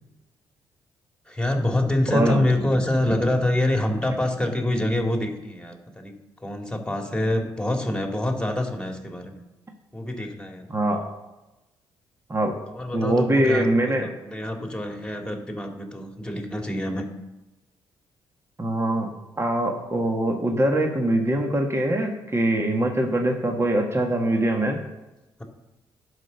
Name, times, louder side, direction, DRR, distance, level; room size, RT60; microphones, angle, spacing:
voice 1, 1.3-6.1 6.4-9.3 9.9-10.7 12.7-17.1, left 1 dB, 10° left, 3 dB, 2.3 m, -26 dB
voice 2, 2.1-2.4 10.7-11.0 12.3-12.6 12.9-14.1 18.6-19.1 19.4-24.8, right 1 dB, 25° right, 3 dB, 1.6 m, -23 dB
11.0 x 5.3 x 6.7 m, 1.0 s
hypercardioid pair, 45°, 11 cm